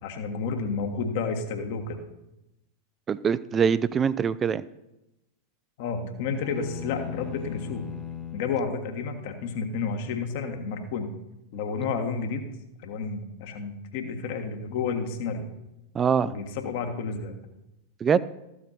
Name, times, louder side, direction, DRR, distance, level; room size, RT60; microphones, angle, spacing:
voice 1, 0.0-2.0 5.8-7.8 8.3-11.1 11.5-12.5 12.8-15.4 16.2-17.3, left 5 dB, 50° left, 5 dB, 1.5 m, -31 dB
voice 2, 3.1-4.6 15.9-16.3 18.0-18.2, right 7 dB, 20° right, 17 dB, 0.4 m, -23 dB
sound 1, 6.3-8.6, left 9 dB, 5° left, 1.0 m, -38 dB
14.0 x 7.4 x 4.3 m, 0.92 s
figure-of-eight pair, 90°, 0 cm